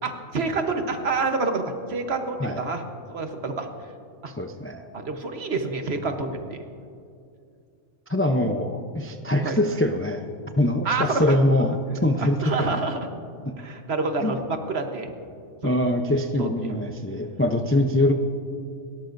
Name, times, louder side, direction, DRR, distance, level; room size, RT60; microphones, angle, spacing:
voice 1, 0.0-2.8 3.1-3.7 4.2-4.3 4.9-6.6 9.4-9.6 10.8-11.4 12.2-13.0 13.6-15.1 15.6-15.8 16.4-16.5, right 3 dB, 55° right, 5 dB, 1.3 m, -28 dB
voice 2, 4.3-4.8 8.1-10.2 10.6-12.8 14.2-14.4 15.6-18.1, left 1 dB, 20° left, 5 dB, 0.4 m, -23 dB
29.5 x 13.0 x 2.6 m, 2.4 s
omnidirectional pair, 1.3 m